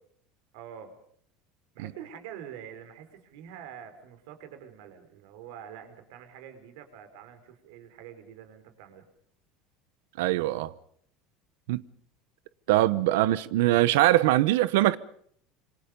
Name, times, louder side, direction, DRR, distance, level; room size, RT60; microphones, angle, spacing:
voice 1, 0.5-1.0 1.7-9.1, right 9 dB, 75° right, 5.0 m, -46 dB
voice 2, 10.2-10.7 11.7-11.8 12.7-15.0, right 15 dB, 90° right, 1.0 m, -22 dB
27.5 x 25.5 x 5.4 m
cardioid pair, 160°, 0 cm